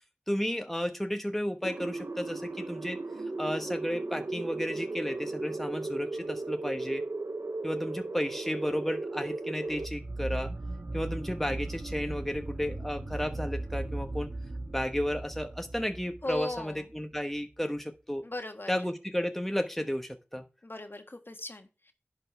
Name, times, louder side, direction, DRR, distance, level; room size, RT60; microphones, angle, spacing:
voice 1, 0.3-3.0 3.4-7.0 7.6-10.5 10.9-14.3 14.7-18.2 18.7-20.5, equal, 5° left, 6 dB, 1.1 m, -33 dB
sound 1, 1.6-9.9, right 2 dB, 80° right, 0.6 m, -36 dB
sound 2, 9.7-17.0, right 2 dB, 60° right, 1.4 m, -38 dB
voice 2, 16.2-16.8 18.2-18.7 20.6-21.9, left 2 dB, 55° left, 6 dB, 1.5 m, -38 dB
11.0 x 5.3 x 4.6 m, 0.30 s
wide cardioid pair, 45°, 4 cm